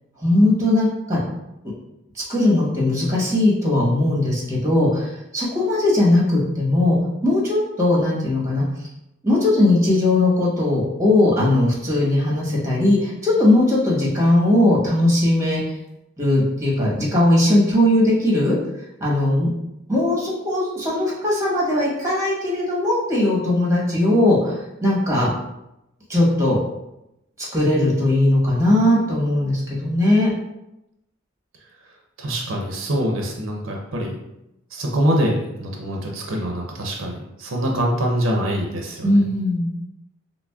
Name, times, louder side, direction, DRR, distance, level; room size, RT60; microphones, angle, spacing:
voice 1, 0.2-1.2 2.3-8.6 9.2-15.6 16.2-18.6 19.0-19.5 19.9-25.3 26.1-26.6 27.5-30.3 39.0-39.7, left 1 dB, 15° right, -5 dB, 1.1 m, -19 dB
voice 2, 32.2-34.1 34.7-39.1, equal, 75° right, 0 dB, 0.6 m, -24 dB
5.8 x 2.0 x 2.3 m, 0.87 s
head